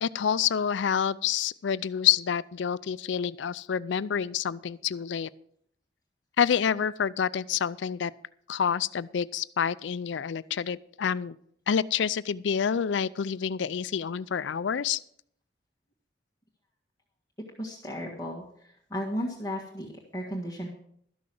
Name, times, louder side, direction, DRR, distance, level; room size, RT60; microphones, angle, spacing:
voice 1, 0.0-5.3 6.4-8.1 8.5-11.4 11.7-15.0, left 8 dB, 75° left, 18 dB, 0.4 m, -28 dB
voice 2, 17.6-18.4 18.9-20.7, equal, 15° left, -5 dB, 1.6 m, -34 dB
13.0 x 6.2 x 7.6 m, 0.68 s
head